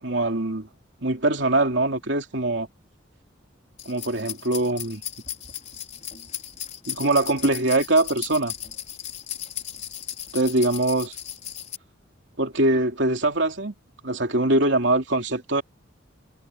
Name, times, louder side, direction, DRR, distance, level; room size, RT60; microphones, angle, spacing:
voice 1, 0.0-0.7 1.0-2.7 3.8-5.0 6.9-8.5 10.3-11.2 12.4-13.7 14.0-15.6, right 2 dB, 65° right, 2.9 m, -23 dB
sound 1, 3.8-11.8, left 10 dB, 35° left, 5.3 m, -36 dB
head